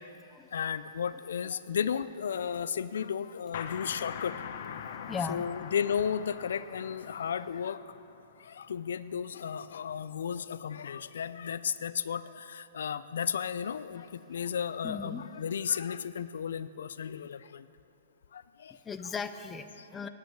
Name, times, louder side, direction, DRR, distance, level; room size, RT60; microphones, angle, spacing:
voice 1, 0.5-4.3 5.2-7.8 8.5-17.6 18.3-18.7 19.0-19.1, left 7 dB, 75° left, 15 dB, 0.4 m, -34 dB
sound 1, 3.5-9.0, left 8 dB, 55° left, 0.8 m, -43 dB
voice 2, 4.8-5.4 14.8-15.2 18.8-20.1, left 5 dB, 15° left, 10 dB, 0.5 m, -37 dB
10.0 x 9.1 x 9.2 m, 2.8 s
hypercardioid pair, 150°, 0 cm